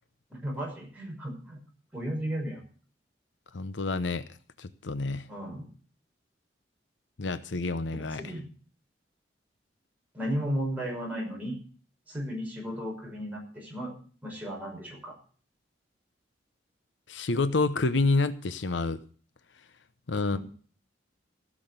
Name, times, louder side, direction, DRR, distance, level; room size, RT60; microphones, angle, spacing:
voice 1, 0.3-1.6 1.9-2.6 5.3-5.7 8.1-8.5 10.1-11.6 12.1-14.0 14.2-15.1 20.3-20.4, equal, 10° right, 5.7 m, -34 dB
voice 2, 3.5-4.3 4.6-5.3 7.2-8.2 17.1-19.0 20.1-20.4, left 3 dB, 85° left, 0.8 m, -28 dB
16.0 x 6.3 x 8.0 m
head